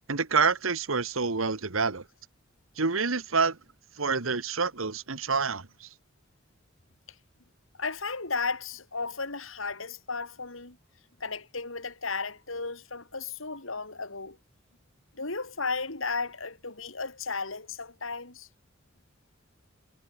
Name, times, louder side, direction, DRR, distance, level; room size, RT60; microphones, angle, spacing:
voice 1, 0.1-2.0 2.8-3.6 4.0-5.9, right 4 dB, 85° right, 1.6 m, -27 dB
voice 2, 7.8-10.8 11.2-14.4 15.2-18.5, left 4 dB, 75° left, 4.0 m, -34 dB
head